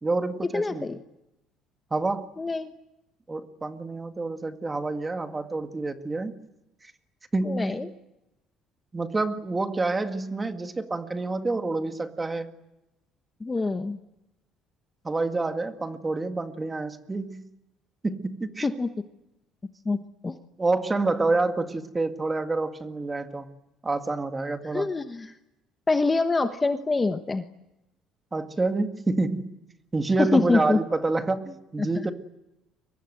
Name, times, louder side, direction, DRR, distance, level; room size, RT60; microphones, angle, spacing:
voice 1, 0.0-0.9 1.9-2.3 3.3-6.3 6.8-6.9 7.3-7.9 8.9-12.5 15.0-17.5 18.0-18.7 20.6-23.5 23.8-24.9 28.3-29.5 29.9-32.1, right 3 dB, 15° right, 7 dB, 2.0 m, -28 dB
voice 2, 0.5-1.0 2.4-2.7 7.4-7.9 13.4-14.0 18.6-18.9 19.8-20.3 24.7-25.3 25.9-27.4 30.2-30.8 31.8-31.9, left 3 dB, 15° left, 8 dB, 1.1 m, -25 dB
29.5 x 23.5 x 7.9 m, 0.92 s
cardioid pair, 135°, 0 cm